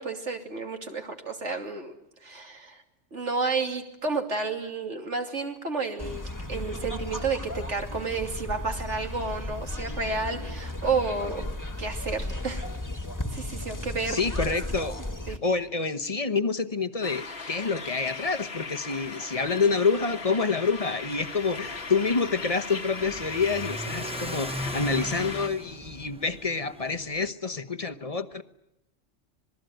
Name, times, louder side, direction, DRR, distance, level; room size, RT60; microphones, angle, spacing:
voice 1, 0.0-1.9 2.2-2.8 3.1-11.4 11.8-12.6 13.3-14.2 14.5-14.6 15.3-15.4, right 4 dB, 75° right, 4 dB, 3.2 m, -31 dB
sound 1, 6.0-15.4, left 1 dB, 15° left, 1.6 m, -35 dB
voice 2, 14.1-15.0 15.3-28.4, left 4 dB, 30° left, 8 dB, 1.1 m, -27 dB
sound 2, 17.0-25.5, left 4 dB, 60° left, 1.7 m, -38 dB
Car / Accelerating revving vroom, 21.1-27.3, equal, 5° right, 0.8 m, -39 dB
26.5 x 20.5 x 9.2 m, 0.86 s
omnidirectional pair, 1.2 m